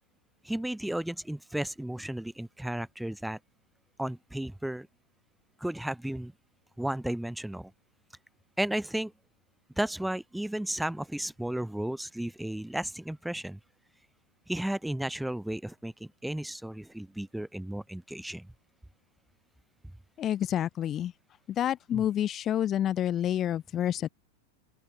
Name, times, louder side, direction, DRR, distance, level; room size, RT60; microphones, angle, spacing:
voice 1, 0.4-3.4 4.0-4.9 5.6-6.3 6.8-7.7 8.6-9.1 9.8-13.6 14.5-18.5 21.9-22.1, right 1 dB, 5° right, 5.5 m, -34 dB
voice 2, 20.2-21.1 21.5-24.1, left 11 dB, 30° left, 3.0 m, -28 dB
open air
figure-of-eight pair, 90°, 0 cm